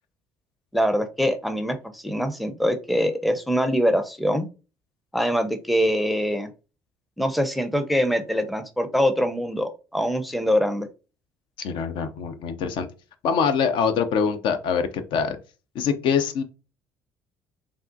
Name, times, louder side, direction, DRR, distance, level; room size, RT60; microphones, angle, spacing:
voice 1, 0.7-4.5 5.1-6.5 7.2-10.9, equal, ahead, 8 dB, 0.5 m, -23 dB
voice 2, 11.6-12.9 13.2-15.4 15.7-16.4, left 6 dB, 60° left, 8 dB, 0.5 m, -24 dB
3.4 x 2.4 x 2.5 m, 0.33 s
hypercardioid pair, 55°, 9 cm